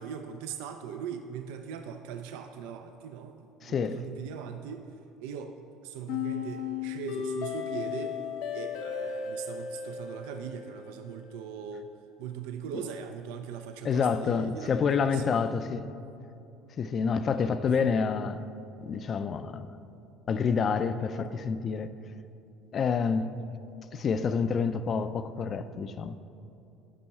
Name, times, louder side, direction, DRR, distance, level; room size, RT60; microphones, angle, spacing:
voice 1, 0.0-4.9 5.2-5.6 5.8-8.2 8.5-11.9 12.2-15.3 17.2-17.5, right 7 dB, 85° right, 0.4 m, -40 dB
voice 2, 3.6-4.1 13.8-15.9 16.8-18.5 18.8-19.7 20.3-21.9 22.7-23.4 23.9-26.3, left 5 dB, 40° left, 0.4 m, -28 dB
sound 1, 6.1-11.1, left 7 dB, 75° left, 0.7 m, -35 dB
10.5 x 5.4 x 4.2 m
cardioid pair, 115°, 0 cm